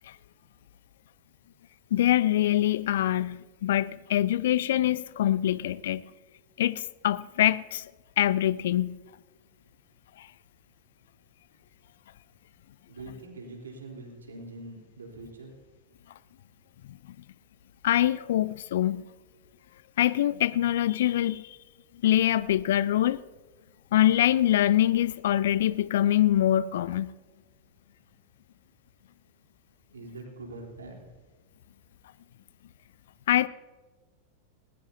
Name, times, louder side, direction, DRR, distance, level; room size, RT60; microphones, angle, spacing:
voice 1, 1.9-6.0 6.6-7.9 8.2-9.0 10.2-10.3 17.8-19.0 20.0-21.6 22.0-23.2 23.9-27.1 33.3-33.5, left 12 dB, 60° left, 0.4 m, -24 dB
voice 2, 12.9-15.5 29.9-31.1, right 2 dB, 70° right, 3.7 m, -43 dB
20.0 x 19.0 x 2.8 m
figure-of-eight pair, 90°, 0 cm